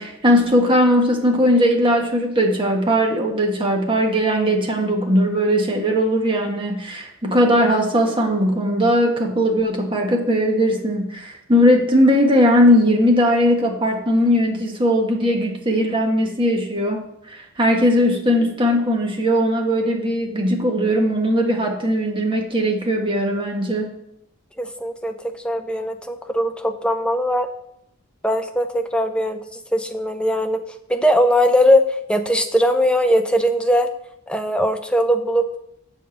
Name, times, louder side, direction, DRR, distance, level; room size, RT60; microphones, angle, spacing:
voice 1, 0.0-23.9, equal, 25° right, 1 dB, 1.3 m, -19 dB
voice 2, 24.6-27.5 28.2-30.6 30.9-33.9 34.3-35.6, equal, 5° left, 6 dB, 0.5 m, -20 dB
7.4 x 5.0 x 7.1 m, 0.77 s
head